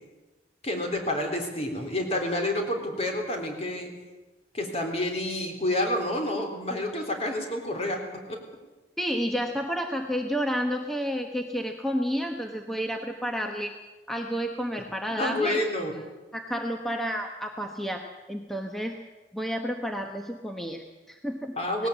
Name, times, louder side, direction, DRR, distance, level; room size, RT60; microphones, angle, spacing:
voice 1, 0.6-3.9 4.5-8.4 15.2-15.9 21.6-21.9, left 1 dB, 35° left, 3 dB, 3.7 m, -29 dB
voice 2, 9.0-13.7 14.1-15.6 16.3-18.0 18.3-19.0 19.3-21.6, equal, ahead, 3 dB, 1.1 m, -30 dB
18.5 x 17.5 x 8.2 m, 1.2 s
head